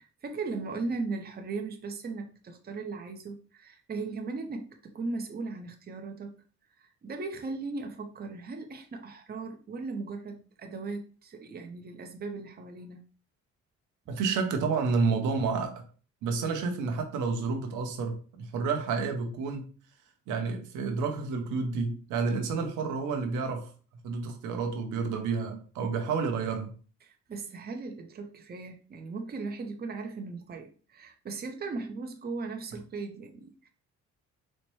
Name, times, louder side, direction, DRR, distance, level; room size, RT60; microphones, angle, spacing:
voice 1, 0.0-6.4 6.8-13.0 27.0-33.7, right 3 dB, 30° right, 0.6 m, -38 dB
voice 2, 14.1-15.8 16.2-19.7 20.3-23.7 24.0-26.7, right 4 dB, 85° right, 0.7 m, -30 dB
4.2 x 2.1 x 3.1 m
cardioid pair, 90°, 30 cm